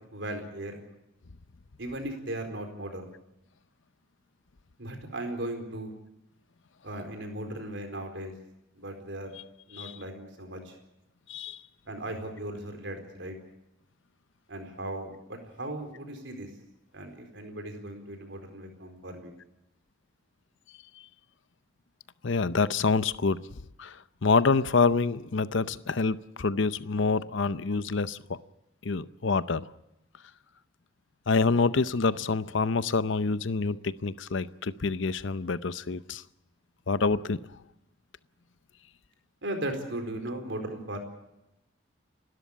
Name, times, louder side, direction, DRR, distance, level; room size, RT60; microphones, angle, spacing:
voice 1, 0.1-0.8 1.8-3.1 4.8-5.9 6.8-8.3 8.8-9.3 9.7-10.8 11.9-13.3 14.5-16.5 16.9-19.4 39.4-41.0, right 1 dB, 65° right, 4.3 m, -37 dB
voice 2, 11.3-11.6 22.2-23.4 23.8-28.4 28.8-29.6 31.3-36.2 36.9-37.4, left 4 dB, 70° left, 0.7 m, -27 dB
30.0 x 13.0 x 8.5 m
head